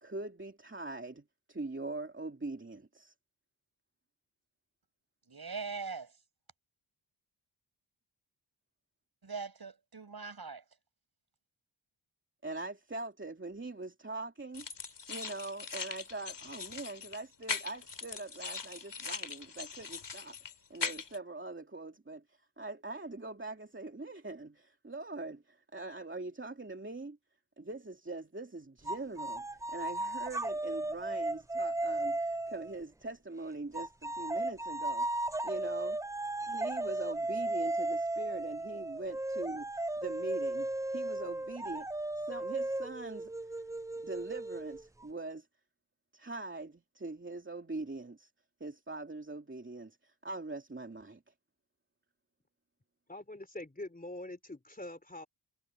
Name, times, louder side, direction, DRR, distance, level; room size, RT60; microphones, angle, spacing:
voice 1, 0.0-3.1 12.4-14.7 15.1-27.2 27.6-36.0 36.4-41.9 42.2-43.6 44.0-45.5 46.1-48.3 48.6-51.2, right 2 dB, 25° right, 2.8 m, -43 dB
voice 2, 5.3-6.1 9.2-10.6, right 4 dB, 50° right, 7.0 m, -41 dB
sound 1, 14.5-21.2, left 5 dB, 60° left, 3.0 m, -41 dB
sound 2, 28.9-32.8 33.7-45.1, right 2 dB, 5° right, 0.4 m, -35 dB
voice 3, 53.1-55.3, left 1 dB, 20° left, 3.5 m, -44 dB
wide cardioid pair, 95°, 47 cm